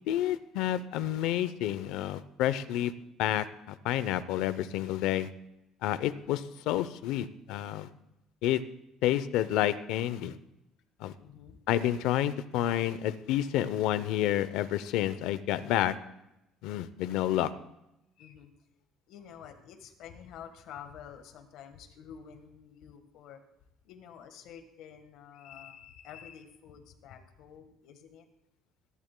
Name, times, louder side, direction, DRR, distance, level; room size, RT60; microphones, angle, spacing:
voice 1, 0.1-2.9 3.2-5.3 5.8-7.9 8.4-8.6 9.0-10.4 11.0-11.1 11.7-15.9 16.6-17.5, left 12 dB, 80° left, 13 dB, 0.6 m, -29 dB
voice 2, 5.9-6.2 11.2-11.6 18.2-18.5 19.1-23.4 23.8-28.3, left 8 dB, 60° left, 7 dB, 1.4 m, -49 dB
22.0 x 11.0 x 2.2 m, 0.88 s
cardioid pair, 170°, 0 cm